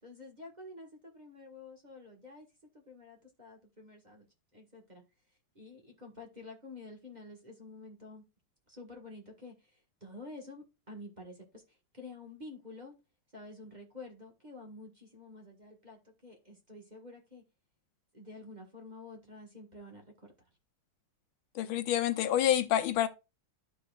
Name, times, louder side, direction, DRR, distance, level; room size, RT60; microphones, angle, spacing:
voice 1, 0.0-2.5 2.7-4.3 4.5-5.0 5.5-8.2 8.7-12.9 13.3-17.4 18.1-20.3, left 2 dB, 25° right, 1.4 m, -49 dB
voice 2, 21.5-23.1, left 11 dB, 85° left, 1.6 m, -28 dB
12.5 x 4.7 x 2.3 m
omnidirectional pair, 2.2 m